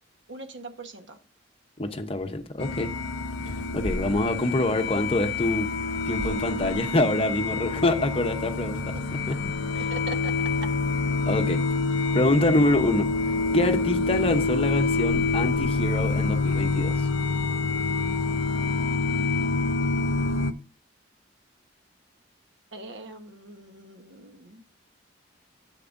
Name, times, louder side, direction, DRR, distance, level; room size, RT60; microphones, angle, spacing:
voice 1, 0.3-1.2 9.7-10.3 10.6-10.7 22.7-24.6, right 3 dB, 70° right, 1.2 m, -41 dB
voice 2, 1.8-2.9 3.7-5.7 6.0-9.0 9.3-9.4 11.3-11.6 12.1-13.1 13.5-17.1, left 1 dB, 30° left, 0.8 m, -25 dB
sound 1, 2.6-20.5, left 3 dB, 75° left, 0.6 m, -27 dB
sound 2, 3.4-5.1 5.8-7.2 7.7-7.8 8.7-9.9 10.8-10.9 14.1-15.7 16.4-16.5, left 1 dB, 45° right, 5.5 m, -40 dB
10.5 x 8.0 x 2.6 m
head